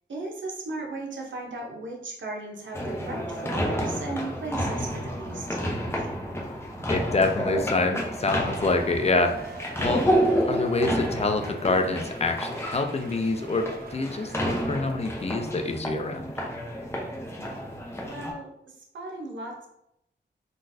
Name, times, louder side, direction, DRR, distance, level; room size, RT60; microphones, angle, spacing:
voice 1, 0.1-6.1 18.0-18.5 18.9-19.7, right 2 dB, 85° right, -1 dB, 0.8 m, -36 dB
sound 1, 2.7-18.3, equal, 15° left, 0.7 m, -30 dB
voice 2, 6.9-9.4 9.8-10.1 10.5-16.3, left 3 dB, 35° left, 5 dB, 0.4 m, -26 dB
Shout / Cheering, 7.8-16.1 16.5-16.6, right 4 dB, 55° right, 0.4 m, -45 dB
3.8 x 2.3 x 2.6 m, 0.79 s
wide cardioid pair, 95°, 19 cm